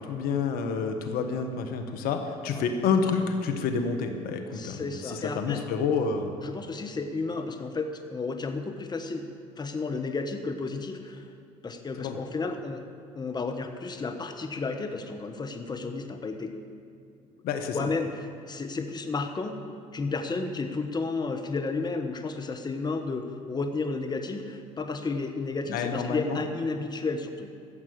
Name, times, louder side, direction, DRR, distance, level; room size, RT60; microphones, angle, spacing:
voice 1, 0.0-6.3 12.0-12.2 17.4-17.9 25.7-26.4, left 5 dB, 60° left, 5 dB, 1.3 m, -29 dB
voice 2, 4.5-5.6 6.4-9.2 9.6-11.3 11.6-12.8 13.1-16.5 17.7-19.6 19.9-27.5, left 3 dB, 25° left, 6 dB, 1.3 m, -32 dB
13.5 x 8.1 x 7.9 m, 2.4 s
hypercardioid pair, 70°, 17 cm